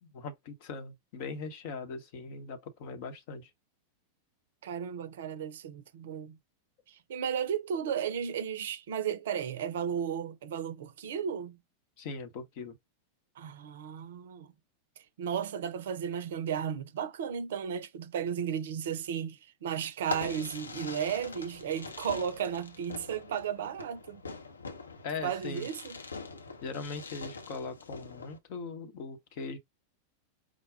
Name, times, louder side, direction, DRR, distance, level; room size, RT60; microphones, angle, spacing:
voice 1, 0.0-3.5 12.0-12.8 25.0-25.7 26.6-29.6, left 4 dB, 50° left, 0.9 m, -40 dB
voice 2, 4.6-6.4 6.9-11.6 13.4-14.5 15.0-24.2 25.2-26.0, right 8 dB, 60° right, 0.5 m, -34 dB
Fireworks, 20.0-28.4, left 4 dB, 75° left, 0.9 m, -43 dB
5.0 x 2.3 x 3.5 m
figure-of-eight pair, 90°, 0 cm